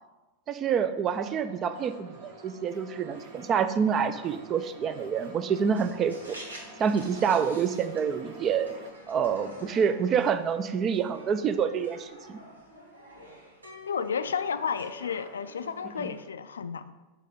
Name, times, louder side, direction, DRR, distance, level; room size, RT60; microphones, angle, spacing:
voice 1, 0.5-6.4 6.8-8.7 9.1-12.4 16.0-16.1, right 7 dB, 30° right, 11 dB, 0.4 m, -27 dB
sound 1, 1.1-8.9, right 1 dB, 50° right, 1.1 m, -49 dB
sound 2, 5.7-16.2, equal, 80° right, 1.5 m, -48 dB
voice 2, 13.9-16.9, left 6 dB, 70° left, 12 dB, 0.3 m, -32 dB
6.4 x 4.1 x 5.2 m, 1.1 s
figure-of-eight pair, 90°, 0 cm